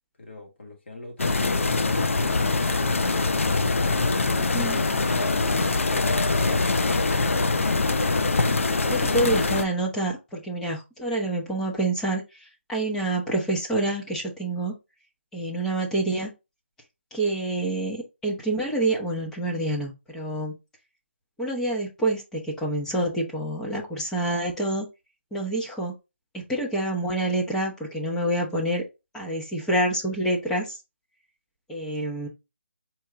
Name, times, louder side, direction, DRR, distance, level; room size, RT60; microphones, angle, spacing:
voice 1, 0.2-3.6 4.5-6.1 6.8-7.3, left 1 dB, 60° left, 2.0 m, -42 dB
sound 1, 1.2-9.6, left 3 dB, 85° left, 0.6 m, -23 dB
voice 2, 4.4-4.8 8.9-12.2 12.7-14.7 15.3-16.3 17.1-20.5 21.4-24.9 25.3-25.9 26.3-28.8 29.1-30.8 31.7-32.3, right 1 dB, 5° left, 0.8 m, -27 dB
4.5 x 2.8 x 3.5 m
hypercardioid pair, 160°, 7 cm